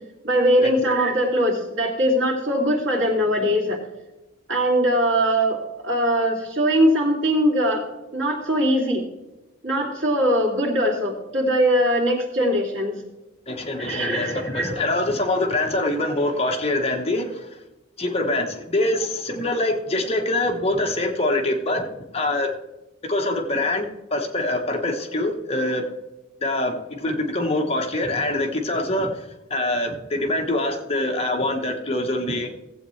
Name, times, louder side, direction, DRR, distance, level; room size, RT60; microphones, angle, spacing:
voice 1, 0.2-3.8 4.5-7.9 8.1-9.0 9.6-13.0 13.8-14.8, equal, 75° right, -1 dB, 2.8 m, -21 dB
voice 2, 13.5-17.6 18.0-21.9 22.1-22.5 23.0-25.9 26.4-32.5, left 1 dB, 30° left, 3 dB, 1.1 m, -24 dB
16.0 x 8.0 x 3.2 m, 1.0 s
head